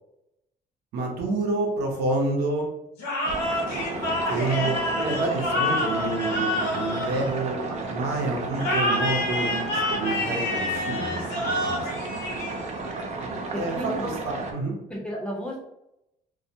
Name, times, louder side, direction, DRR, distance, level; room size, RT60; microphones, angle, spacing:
voice 1, 0.9-2.7 3.9-11.9 13.6-14.7, right 2 dB, 75° right, 0 dB, 0.7 m, -28 dB
sound 1, 3.0-7.8 8.6-13.0, left 1 dB, 80° left, 0.8 m, -28 dB
sound 2, 3.2-14.5, right 3 dB, 40° right, 0.5 m, -33 dB
voice 2, 13.5-14.4 14.9-15.6, equal, 5° left, -3 dB, 0.7 m, -33 dB
2.3 x 2.1 x 2.7 m, 0.84 s
cardioid pair, 110°, 17 cm